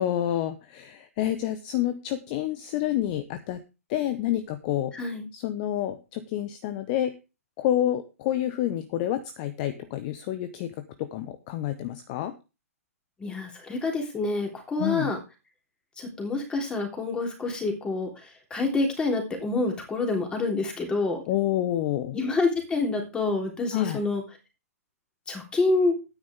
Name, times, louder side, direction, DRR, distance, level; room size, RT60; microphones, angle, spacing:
voice 1, 0.0-3.6 3.9-4.9 5.3-7.1 7.6-12.3 14.8-15.1 21.3-22.2 23.7-24.0, left 12 dB, 30° left, 11 dB, 1.0 m, -28 dB
voice 2, 4.9-5.3 13.2-15.2 16.0-18.1 18.5-21.2 22.1-24.2 25.3-26.0, left 3 dB, 10° left, 3 dB, 3.5 m, -27 dB
12.5 x 9.6 x 3.6 m, 0.29 s
figure-of-eight pair, 120°, 8 cm